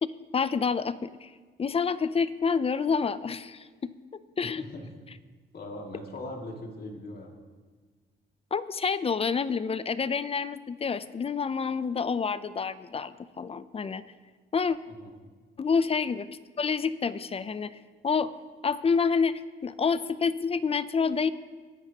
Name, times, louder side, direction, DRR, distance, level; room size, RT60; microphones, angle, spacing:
voice 1, 0.0-1.3 1.6-3.9 4.4-4.6 8.5-14.0 14.5-14.8 15.6-16.3 16.6-17.7 18.0-18.3 18.6-21.3, left 5 dB, 30° left, 15 dB, 0.5 m, -28 dB
voice 2, 4.6-4.9 5.5-7.3 15.0-15.1, left 1 dB, 50° left, 1 dB, 2.4 m, -40 dB
21.0 x 10.5 x 2.9 m, 1.4 s
cardioid pair, 90°, 20 cm